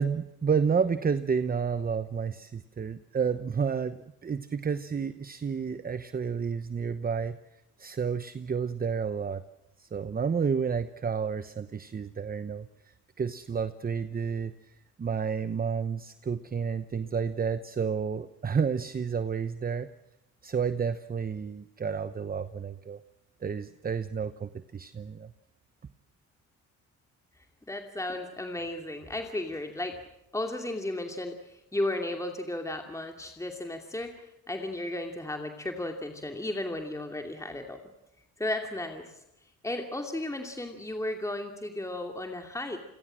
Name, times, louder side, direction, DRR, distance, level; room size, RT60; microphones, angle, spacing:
voice 1, 0.0-7.4 7.8-9.4 9.8-12.7 13.2-19.9 20.4-23.0 23.4-25.3, right 6 dB, 30° right, 12 dB, 0.9 m, -30 dB
voice 2, 27.7-30.0 30.3-37.8 38.4-39.1 39.6-42.8, left 1 dB, 10° left, 4 dB, 2.6 m, -34 dB
28.0 x 22.0 x 7.6 m, 0.86 s
cardioid pair, 90°, 30 cm